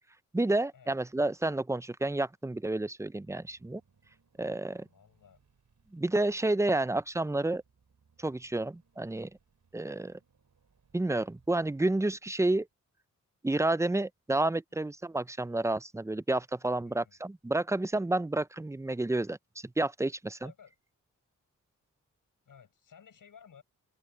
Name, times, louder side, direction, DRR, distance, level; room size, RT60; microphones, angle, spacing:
voice 1, 0.3-3.8 4.4-4.9 5.9-7.6 8.2-9.3 9.7-10.2 10.9-12.7 13.4-19.4 19.8-20.5, right 2 dB, 10° right, 0.5 m, -30 dB
Car / Engine, 3.3-12.4, right 5 dB, 65° right, 5.0 m, -69 dB
voice 2, 4.8-5.4 16.8-17.2 20.4-20.7 22.4-23.6, left 7 dB, 80° left, 6.7 m, -56 dB
open air
cardioid pair, 55°, 32 cm